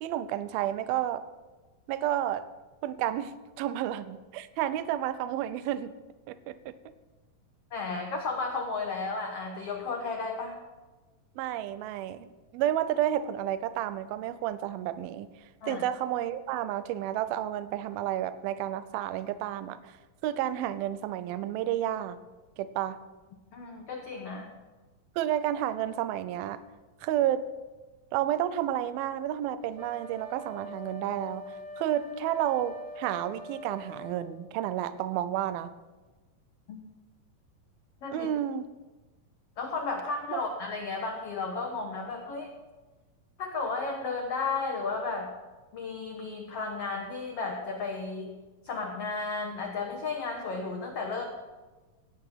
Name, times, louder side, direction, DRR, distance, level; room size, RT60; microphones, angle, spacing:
voice 1, 0.0-1.2 1.9-2.4 2.8-5.9 6.3-6.7 11.4-12.3 12.5-15.3 15.6-20.0 20.2-22.2 22.6-23.0 25.2-26.6 27.0-27.5 28.1-31.5 31.8-35.7 38.1-38.7 40.3-40.4, right 12 dB, 80° right, 14 dB, 2.5 m, -31 dB
voice 2, 7.7-10.6 15.6-15.8 23.5-24.5 36.7-36.8 38.0-38.3 39.6-42.5 43.4-45.3 45.7-48.3 48.6-51.2, left 4 dB, 65° left, 2 dB, 1.6 m, -33 dB
Wind instrument woodwind instrument, 29.7-34.2, left 1 dB, 55° right, 1.5 m, -43 dB
17.0 x 9.3 x 5.7 m, 1.2 s
omnidirectional pair, 4.3 m